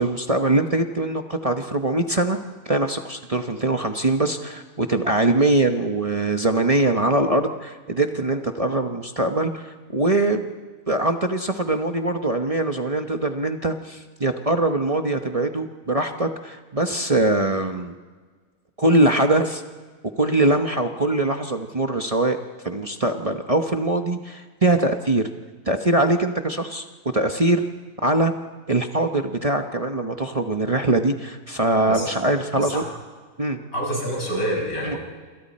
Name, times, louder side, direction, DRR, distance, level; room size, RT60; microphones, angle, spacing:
voice 1, 0.0-2.4 2.6-10.5 10.9-17.9 18.8-19.6 20.2-22.4 22.6-25.2 25.7-26.8 27.1-27.6 28.0-28.3 28.7-32.8 33.4-33.6 34.8-35.0, right 2 dB, 30° right, 5 dB, 1.0 m, -22 dB
voice 2, 33.7-35.0, equal, 80° left, -1 dB, 6.6 m, -27 dB
27.5 x 27.0 x 4.3 m, 1.5 s
omnidirectional pair, 1.5 m